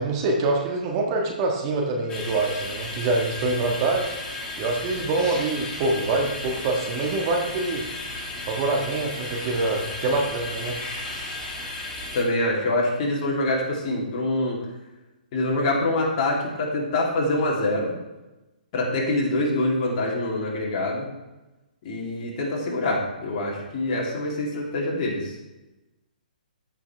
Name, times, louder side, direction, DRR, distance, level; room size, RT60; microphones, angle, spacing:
voice 1, 0.0-4.1 4.6-7.8 8.5-10.8, right 3 dB, 35° right, 1 dB, 1.4 m, -25 dB
sound 1, 2.1-12.2, left 2 dB, 15° left, 1.8 m, -34 dB
voice 2, 12.1-14.6 15.3-18.0 18.7-21.1 21.8-25.3, left 2 dB, 40° left, -3 dB, 2.9 m, -25 dB
15.0 x 5.8 x 3.3 m, 1.0 s
figure-of-eight pair, 135°, 5 cm